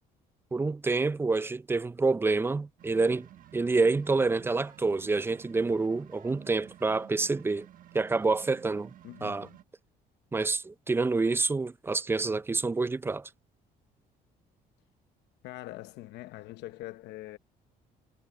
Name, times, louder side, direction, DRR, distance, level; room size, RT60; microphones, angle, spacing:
voice 1, 0.5-3.3 3.5-7.7 7.9-8.9 9.2-9.5 10.3-13.3, right 3 dB, 15° right, 0.4 m, -27 dB
sound 1, 2.8-9.6, right 11 dB, 55° right, 1.3 m, -53 dB
voice 2, 9.0-9.6 15.4-17.4, left 16 dB, 85° left, 0.9 m, -43 dB
cardioid pair, 110°, 17 cm